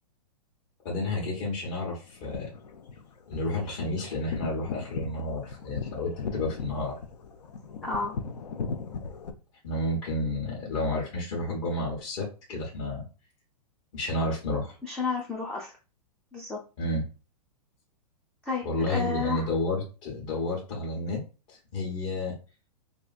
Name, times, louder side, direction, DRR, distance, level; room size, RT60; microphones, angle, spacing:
voice 1, 0.8-2.5 3.3-6.9 9.6-13.0 13.9-14.8 16.8-17.0 18.6-21.2 21.5-22.3, left 1 dB, 50° left, -6 dB, 1.1 m, -31 dB
sound 1, 2.1-9.3, left 5 dB, 75° left, 0.5 m, -38 dB
voice 2, 7.8-8.2 14.8-15.7 16.3-16.6 18.5-19.5, left 4 dB, 5° left, -3 dB, 0.4 m, -31 dB
2.7 x 2.5 x 2.4 m, 0.33 s
hypercardioid pair, 110°, 21 cm